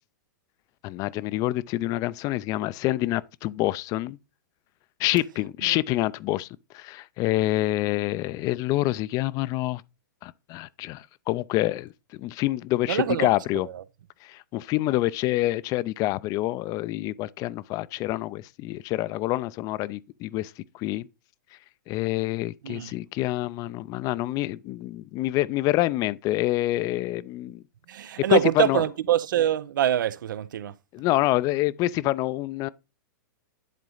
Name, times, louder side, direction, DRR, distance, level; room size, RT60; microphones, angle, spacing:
voice 1, 0.8-4.2 5.0-6.5 6.7-9.8 10.2-13.7 14.2-21.1 21.9-27.6 28.3-28.8 30.9-32.7, left 17 dB, 35° left, 0.4 m, -27 dB
voice 2, 12.9-13.3 13.6-13.8 22.6-22.9 27.9-30.7, right 11 dB, 75° right, 0.6 m, -25 dB
11.0 x 4.0 x 3.9 m
hypercardioid pair, 125°, 11 cm